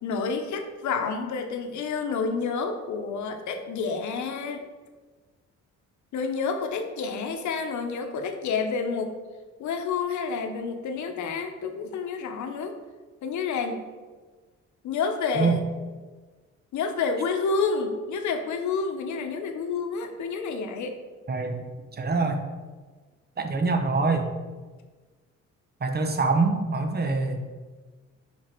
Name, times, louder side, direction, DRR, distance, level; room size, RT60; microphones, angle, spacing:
voice 1, 0.0-4.6 6.1-9.1 9.6-12.7 13.2-13.8 14.8-15.6 16.7-20.9, left 5 dB, 70° left, 5 dB, 0.9 m, -29 dB
voice 2, 21.9-22.4 23.4-24.3 25.8-27.6, right 3 dB, 35° right, 6 dB, 0.8 m, -25 dB
5.1 x 4.9 x 4.4 m, 1.3 s
cardioid pair, 90°, 30 cm